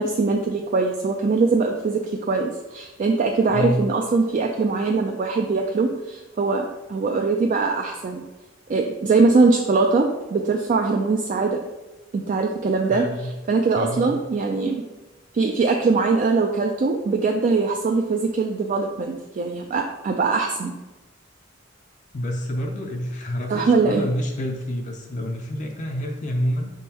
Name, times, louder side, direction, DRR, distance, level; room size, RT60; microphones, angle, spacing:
voice 1, 0.0-8.2 8.7-11.6 12.1-13.1 13.5-14.8 15.3-20.7 23.5-24.1, right 4 dB, 40° right, 3 dB, 0.3 m, -22 dB
voice 2, 3.5-3.9 12.9-13.3 13.7-14.2 22.1-26.7, equal, 40° left, 2 dB, 0.5 m, -28 dB
5.1 x 3.7 x 2.8 m, 1.1 s
head